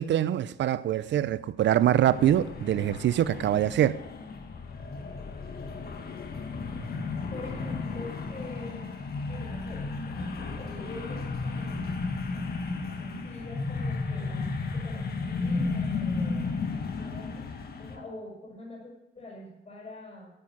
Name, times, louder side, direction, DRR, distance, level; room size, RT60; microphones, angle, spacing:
voice 1, 0.0-4.0, right 11 dB, 65° right, 0.6 m, -24 dB
sound 1, 2.1-18.0, left 4 dB, 50° left, 1.8 m, -34 dB
voice 2, 7.3-8.9 9.3-12.0 13.0-16.6 17.0-17.4 17.8-20.3, left 2 dB, 30° left, 6.2 m, -44 dB
9.9 x 8.6 x 9.1 m
cardioid pair, 90°, 20 cm